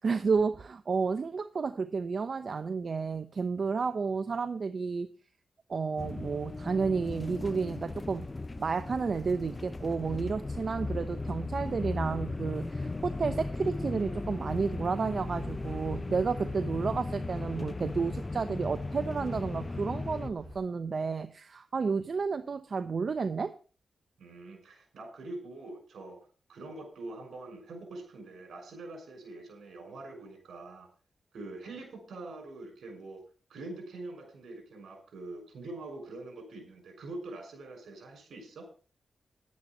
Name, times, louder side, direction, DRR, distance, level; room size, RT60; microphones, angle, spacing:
voice 1, 0.0-5.1 5.7-8.2 8.6-23.5, right 5 dB, 55° right, 10 dB, 0.8 m, -31 dB
sound 1, 6.0-20.3, left 2 dB, 30° left, 0.6 m, -36 dB
sound 2, 15.2-20.6, equal, 25° right, 6.6 m, -51 dB
voice 2, 24.2-26.2 26.5-30.9 31.3-33.2 33.5-38.7, right 2 dB, 80° right, 4 dB, 6.1 m, -44 dB
11.5 x 9.6 x 5.4 m, 0.39 s
cardioid pair, 65°, 0 cm